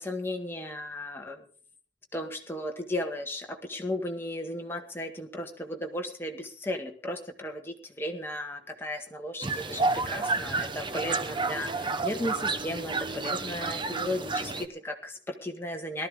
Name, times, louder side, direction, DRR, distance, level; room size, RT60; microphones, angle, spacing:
voice 1, 0.0-1.4 2.1-16.1, left 1 dB, 10° left, 2 dB, 1.7 m, -35 dB
sound 1, 9.4-14.6, right 3 dB, 25° right, 0.9 m, -30 dB
18.5 x 13.0 x 3.7 m, 0.39 s
head